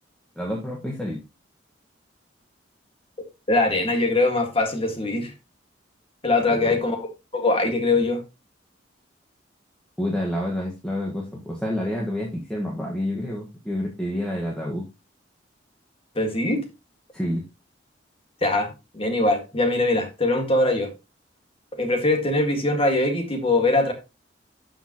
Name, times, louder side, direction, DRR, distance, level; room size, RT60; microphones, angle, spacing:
voice 1, 0.3-1.2 6.5-6.8 10.0-14.9 17.1-17.4, left 1 dB, 5° left, 1.5 m, -28 dB
voice 2, 3.5-5.3 6.2-7.0 7.3-8.2 16.2-16.6 18.4-20.9 21.8-23.9, left 2 dB, 30° left, 1.9 m, -22 dB
12.0 x 5.5 x 3.0 m
head